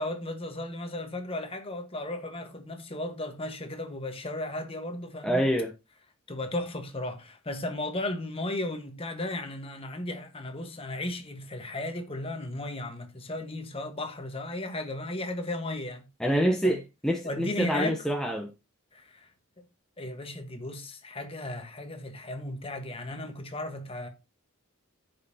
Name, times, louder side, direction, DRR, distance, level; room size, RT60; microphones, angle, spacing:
voice 1, 0.0-5.5 6.3-16.0 16.6-16.8 17.2-18.0 18.9-19.3 20.0-24.1, left 1 dB, 25° left, 1.3 m, -35 dB
voice 2, 5.2-5.7 16.2-18.5, equal, 5° left, 0.7 m, -26 dB
14.0 x 5.3 x 2.8 m
head